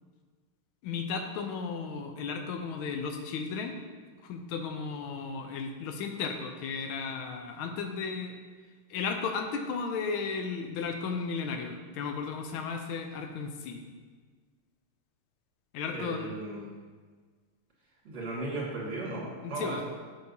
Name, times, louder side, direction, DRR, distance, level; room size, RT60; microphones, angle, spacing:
voice 1, 0.8-3.8 4.2-8.4 8.9-13.8 15.7-16.3 19.4-19.8, left 5 dB, 80° left, 5 dB, 1.4 m, -34 dB
voice 2, 15.9-16.7 18.0-19.8, right 2 dB, 35° right, -5 dB, 1.9 m, -36 dB
6.5 x 6.4 x 2.7 m, 1.5 s
omnidirectional pair, 2.3 m